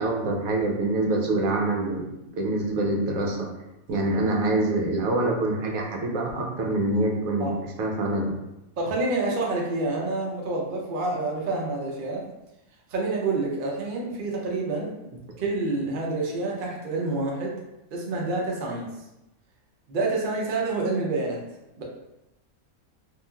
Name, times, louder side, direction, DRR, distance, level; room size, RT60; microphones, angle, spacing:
voice 1, 0.0-3.5 3.9-8.3, right 2 dB, 75° right, -1 dB, 1.0 m, -25 dB
voice 2, 8.8-12.3 12.9-14.9 15.4-17.6 17.9-18.9 19.9-21.4 21.8-21.9, right 2 dB, 60° right, -2 dB, 0.5 m, -28 dB
3.0 x 2.4 x 2.2 m, 0.92 s
omnidirectional pair, 1.5 m